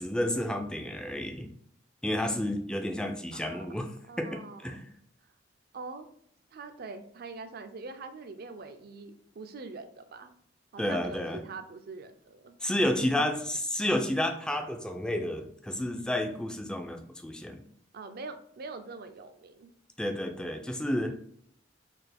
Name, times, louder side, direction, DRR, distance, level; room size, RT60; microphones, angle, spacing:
voice 1, 0.0-1.5 2.0-3.9 4.2-4.9 10.8-11.4 12.6-17.6 20.0-21.2, left 1 dB, 5° left, 4 dB, 0.4 m, -31 dB
voice 2, 3.3-3.8 4.1-4.8 5.7-6.1 6.5-10.3 10.7-12.5 17.9-19.7, right 3 dB, 55° right, 8 dB, 0.5 m, -43 dB
4.3 x 2.4 x 3.4 m, 0.67 s
head